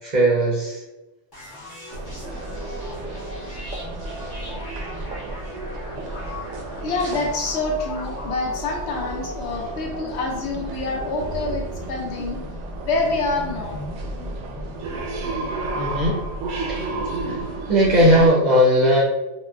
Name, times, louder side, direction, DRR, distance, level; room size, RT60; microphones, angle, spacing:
voice 1, 0.0-0.8 15.7-16.2 16.7-16.9 17.2-17.4 17.7-19.0, equal, 45° right, -4 dB, 0.6 m, -18 dB
sound 1, 1.3-14.9, left 1 dB, 25° left, 0.6 m, -39 dB
sound 2, 1.9-18.3, right 2 dB, 70° right, 0.9 m, -32 dB
voice 2, 6.8-12.4 12.8-13.8, left 3 dB, 70° left, 1 dB, 0.8 m, -26 dB
3.7 x 2.1 x 2.2 m, 1.0 s
omnidirectional pair, 1.3 m